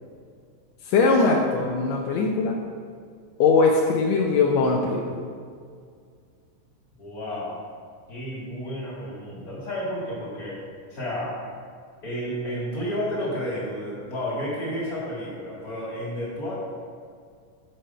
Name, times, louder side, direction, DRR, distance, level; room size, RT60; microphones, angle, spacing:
voice 1, 0.9-2.5 3.4-5.1, left 4 dB, 75° left, -1 dB, 1.6 m, -21 dB
voice 2, 7.0-7.6 8.1-10.6 10.9-11.4 12.0-16.5, equal, 30° left, -7 dB, 2.0 m, -31 dB
7.7 x 6.4 x 5.6 m, 2.1 s
omnidirectional pair, 3.8 m